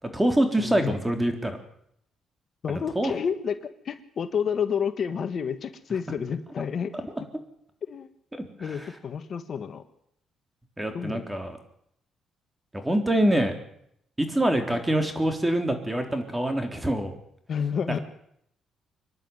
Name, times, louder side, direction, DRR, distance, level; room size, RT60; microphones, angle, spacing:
voice 1, 0.0-1.6 2.7-3.1 8.6-8.9 10.8-11.6 12.7-13.5 14.2-17.1, right 1 dB, 10° right, 6 dB, 3.9 m, -25 dB
voice 2, 0.6-1.0 2.6-3.6 3.8-6.9 7.9-8.1 8.6-9.8 10.9-11.3 14.7-14.8 17.5-18.0, left 7 dB, 55° left, 9 dB, 1.5 m, -30 dB
25.5 x 11.0 x 9.6 m, 0.74 s
cardioid pair, 90°, 0 cm